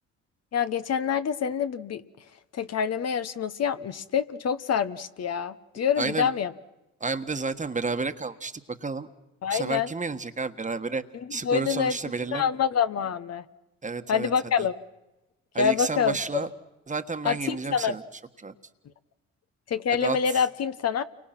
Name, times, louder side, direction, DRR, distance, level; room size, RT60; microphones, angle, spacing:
voice 1, 0.5-2.0 2.5-6.5 9.4-9.9 11.1-12.0 12.3-13.4 14.1-14.7 15.6-16.5 17.2-18.0 19.7-21.0, left 7 dB, 55° left, 11 dB, 1.1 m, -26 dB
voice 2, 6.0-6.3 7.0-8.5 8.8-9.1 9.5-11.0 11.3-12.5 13.8-14.3 15.5-16.5 16.9-18.0 18.4-18.5 20.0-20.2, right 4 dB, 25° right, 9 dB, 1.5 m, -30 dB
29.0 x 24.5 x 6.0 m, 1.0 s
cardioid pair, 90°, 30 cm